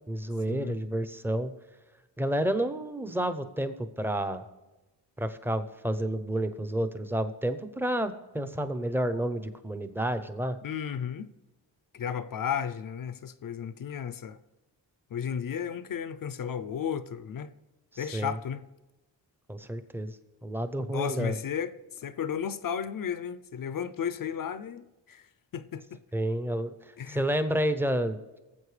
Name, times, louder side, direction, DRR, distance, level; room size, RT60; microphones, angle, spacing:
voice 1, 0.1-1.5 2.2-4.4 5.2-10.6 17.9-18.3 19.5-20.2 20.4-21.4 26.1-26.7 27.1-28.2, right 1 dB, 5° right, 0.6 m, -30 dB
voice 2, 10.6-11.3 11.9-14.4 15.1-17.5 18.0-18.6 20.9-25.3 25.5-26.0 27.0-27.2, left 8 dB, 50° left, 0.5 m, -34 dB
19.0 x 7.5 x 3.3 m
wide cardioid pair, 120°, 45 cm